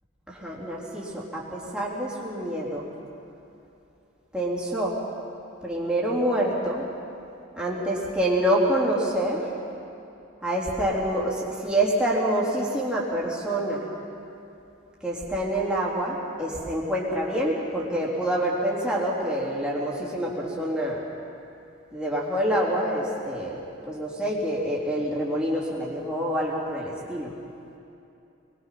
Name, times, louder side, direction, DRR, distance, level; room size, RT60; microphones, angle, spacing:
voice 1, 0.3-2.9 4.3-5.0 5.6-6.9 7.6-9.5 10.4-13.9 15.0-21.0 21.9-27.3, right 1 dB, 5° right, -6 dB, 3.8 m, -26 dB
24.5 x 21.5 x 6.0 m, 2.8 s
head